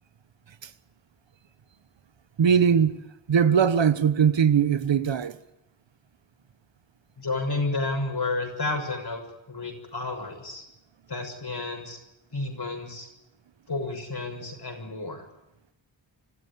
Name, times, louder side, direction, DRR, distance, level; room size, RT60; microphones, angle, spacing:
voice 1, 2.4-3.0 3.3-5.3, right 7 dB, 70° right, 1.2 m, -20 dB
voice 2, 7.2-9.2 9.5-10.6 11.1-12.0 12.3-13.1 13.7-15.2, left 3 dB, 55° left, 6.7 m, -31 dB
25.5 x 13.0 x 9.9 m
cardioid pair, 55°, 46 cm